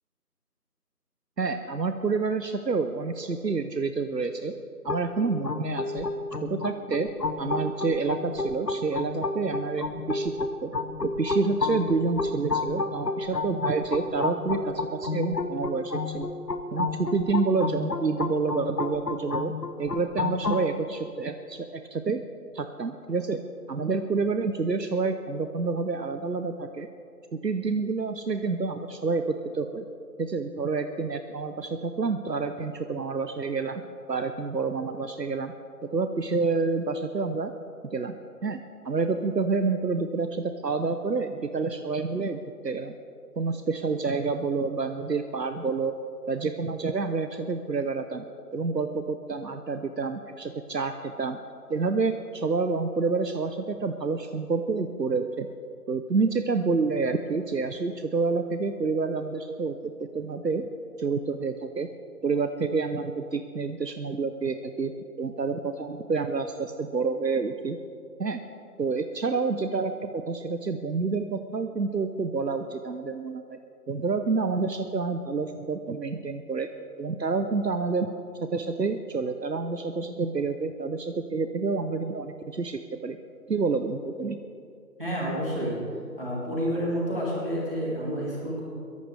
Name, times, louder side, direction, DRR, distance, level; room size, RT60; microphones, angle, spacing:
voice 1, 1.4-4.5 4.8-6.1 6.4-7.1 7.4-10.7 11.0-16.3 16.7-19.5 19.8-22.2 22.5-23.4 23.7-26.9 27.4-29.9 30.2-33.8 34.1-35.5 35.9-37.5 37.9-38.1 38.4-42.9 43.4-45.9 46.3-48.2 48.5-51.4 51.7-55.5 55.9-60.6 61.0-61.9 62.2-64.9 65.2-67.8 68.2-68.4 68.8-73.6 73.9-76.7 77.0-78.1 78.4-83.2 83.5-84.4, right 4 dB, 80° right, 8 dB, 0.9 m, -28 dB
sound 1, 4.9-20.6, left 3 dB, 75° left, 1.0 m, -31 dB
voice 2, 85.0-85.8 86.2-88.6, equal, 35° right, -6 dB, 3.7 m, -29 dB
22.0 x 12.0 x 3.4 m, 2.4 s
figure-of-eight pair, 180°, 48 cm